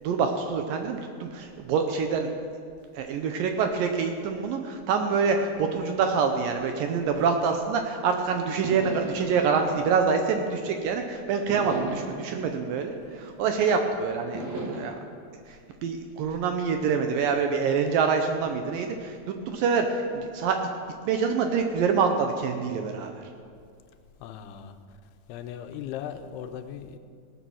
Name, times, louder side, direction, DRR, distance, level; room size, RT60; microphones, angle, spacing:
voice 1, 0.0-2.3 2.9-15.0 15.5-20.6 21.0-23.3, right 5 dB, 75° right, 5 dB, 2.2 m, -26 dB
sound 1, 8.6-10.9 11.5-13.7 14.3-14.8, right 2 dB, 50° right, 1.5 m, -37 dB
voice 2, 24.2-24.8 25.3-27.0, left 9 dB, 90° left, 8 dB, 2.7 m, -38 dB
18.5 x 8.3 x 6.2 m, 2.2 s
omnidirectional pair, 4.6 m